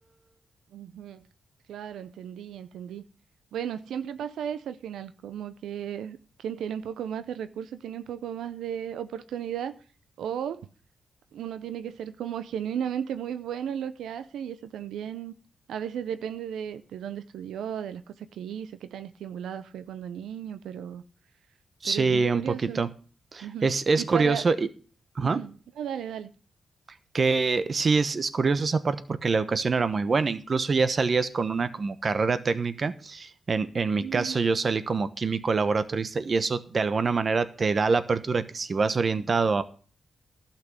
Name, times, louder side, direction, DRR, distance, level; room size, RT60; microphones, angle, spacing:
voice 1, 0.7-1.2 1.7-3.0 3.5-9.7 10.2-10.6 11.3-15.3 15.7-21.0 21.8-22.8 23.4-23.7 24.0-24.5 25.2-26.3 33.9-34.4, right 9 dB, 90° right, 0.5 m, -35 dB
voice 2, 21.8-22.9 23.3-24.7 25.2-25.4 27.1-39.6, right 4 dB, 50° right, 1.0 m, -25 dB
12.0 x 5.9 x 8.0 m
cardioid pair, 55°, 0 cm